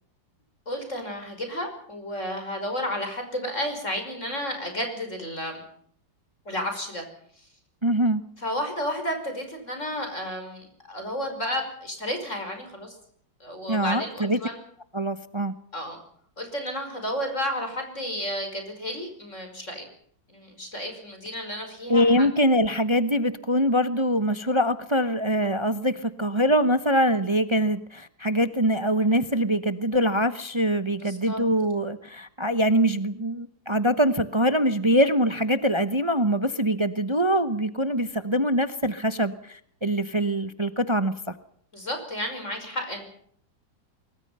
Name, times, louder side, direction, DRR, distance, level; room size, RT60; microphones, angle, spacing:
voice 1, 0.7-5.6 6.5-7.0 7.4-7.5 8.4-13.0 13.4-14.6 15.7-16.0 16.4-19.9 20.3-22.3 31.0-31.4 41.7-43.0, equal, 40° left, 5 dB, 5.8 m, -32 dB
voice 2, 7.8-8.2 13.7-14.4 14.9-15.5 21.9-41.3, equal, 20° right, 11 dB, 0.8 m, -23 dB
25.0 x 23.5 x 5.6 m, 0.64 s
omnidirectional pair, 2.0 m